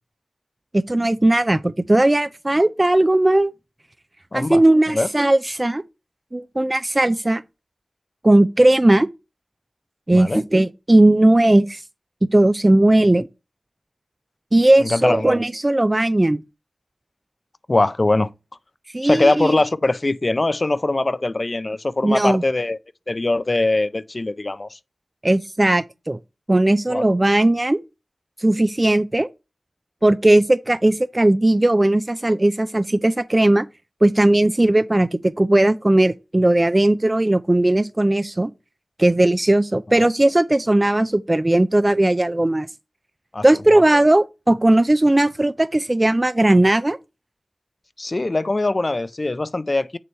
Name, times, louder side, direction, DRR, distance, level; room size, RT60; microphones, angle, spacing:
voice 1, 0.7-3.5 4.3-5.8 6.3-7.4 8.2-9.1 10.1-11.8 12.3-13.3 14.5-16.4 18.9-19.5 22.0-22.4 25.2-26.2 26.5-27.8 28.4-29.3 30.0-33.7 34.0-38.5 39.0-42.7 43.4-47.0, right 1 dB, 30° right, 0.3 m, -17 dB
voice 2, 4.3-4.6 4.9-5.1 10.1-10.4 14.8-15.4 17.7-18.3 19.0-22.8 23.1-24.8 26.9-27.0 39.9-40.1 43.3-43.8 48.0-50.0, left 2 dB, 45° left, 0.4 m, -22 dB
6.7 x 3.2 x 5.4 m
wide cardioid pair, 50°, 0 cm